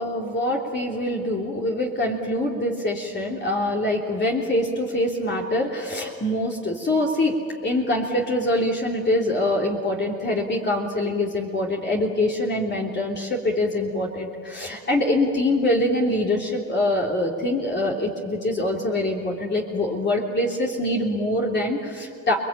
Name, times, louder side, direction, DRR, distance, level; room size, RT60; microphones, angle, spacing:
voice 1, 0.0-7.3 7.6-22.3, left 1 dB, 35° left, -2 dB, 3.4 m, -24 dB
29.5 x 21.5 x 8.9 m, 2.3 s
cardioid pair, 90°, 30 cm